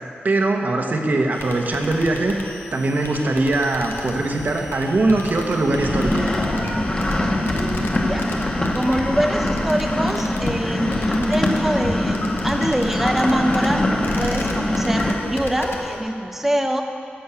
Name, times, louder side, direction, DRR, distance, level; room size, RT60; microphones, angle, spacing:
voice 1, 0.2-2.3 2.7-6.3, right 2 dB, 55° right, 2 dB, 1.1 m, -21 dB
sound 1, 1.3-16.0, left 3 dB, 90° left, 1.1 m, -36 dB
sound 2, 4.1-16.2, left 1 dB, 70° left, 3.4 m, -34 dB
sound 3, 5.6-15.1, left 1 dB, 25° left, 1.2 m, -23 dB
voice 2, 8.7-13.8 14.2-16.8, right 1 dB, 5° right, 4 dB, 0.5 m, -24 dB
11.5 x 6.4 x 8.2 m, 2.5 s
wide cardioid pair, 135°, 4 cm